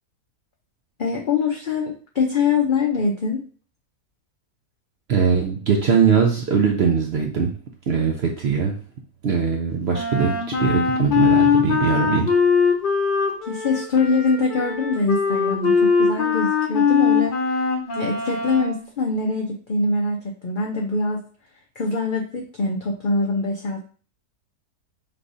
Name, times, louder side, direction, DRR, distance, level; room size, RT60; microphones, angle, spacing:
voice 1, 1.0-3.4 11.9-12.3 13.5-17.6 17.9-21.2 21.8-23.8, left 4 dB, 90° left, -1 dB, 0.4 m, -23 dB
voice 2, 5.1-7.5 7.9-8.7 9.2-12.3, right 6 dB, 65° right, 2 dB, 0.6 m, -21 dB
Wind instrument woodwind instrument, 9.9-18.8, left 5 dB, 50° left, 0.6 m, -21 dB
4.7 x 3.5 x 2.6 m, 0.40 s
omnidirectional pair, 1.7 m